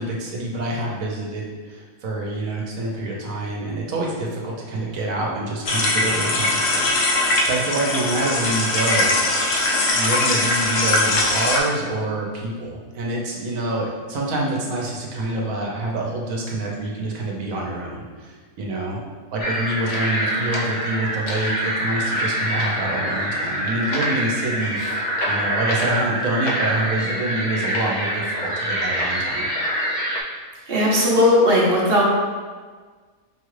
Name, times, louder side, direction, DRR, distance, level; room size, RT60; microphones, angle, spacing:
voice 1, 0.0-9.1 9.9-19.0 19.3-25.0 25.2-29.5, right 2 dB, 70° right, -2 dB, 1.2 m, -26 dB
sound 1, 5.6-11.6, left 2 dB, 65° left, 0.9 m, -21 dB
sound 2, 19.4-30.2, right 1 dB, 80° left, 0.4 m, -25 dB
voice 2, 30.7-32.0, left 1 dB, 50° right, -4 dB, 0.8 m, -17 dB
5.2 x 2.3 x 3.2 m, 1.5 s
omnidirectional pair, 1.5 m